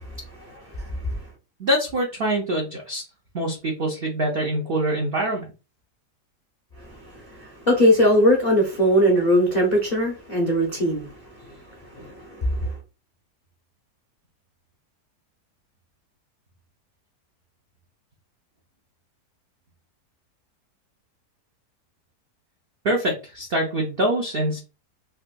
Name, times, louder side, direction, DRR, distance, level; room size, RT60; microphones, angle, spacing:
voice 1, 0.4-1.2 6.8-12.7, equal, 45° left, 0.5 m, -21 dB
voice 2, 1.6-3.0 3.3-5.4 22.8-24.6, right 1 dB, 65° right, 0.5 m, -24 dB
3.9 x 2.5 x 2.2 m
omnidirectional pair, 1.8 m